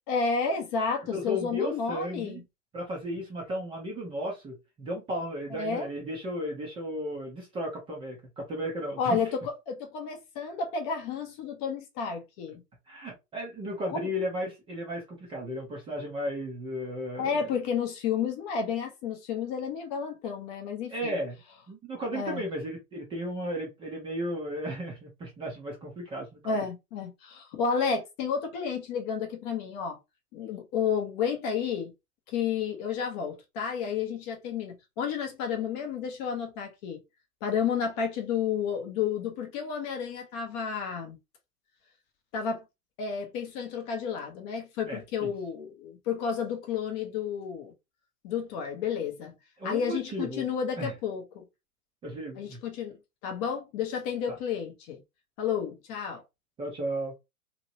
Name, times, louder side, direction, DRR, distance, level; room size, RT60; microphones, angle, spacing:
voice 1, 0.1-2.4 5.5-5.9 9.0-12.6 13.9-14.1 17.2-21.2 22.1-22.4 26.4-30.0 30.3-31.9 32.3-37.0 37.4-41.2 42.3-42.6 43.0-47.7 48.2-49.3 49.6-51.4 52.4-53.0 53.2-55.0 55.4-56.2, left 6 dB, 25° left, 0.7 m, -31 dB
voice 2, 1.1-2.4 2.7-9.2 12.9-17.4 20.9-21.4 21.7-26.6 44.9-45.3 49.6-50.5 50.8-50.9 52.0-52.6 56.6-57.1, equal, 10° right, 0.6 m, -34 dB
3.0 x 2.8 x 2.6 m
hypercardioid pair, 130°, 46 cm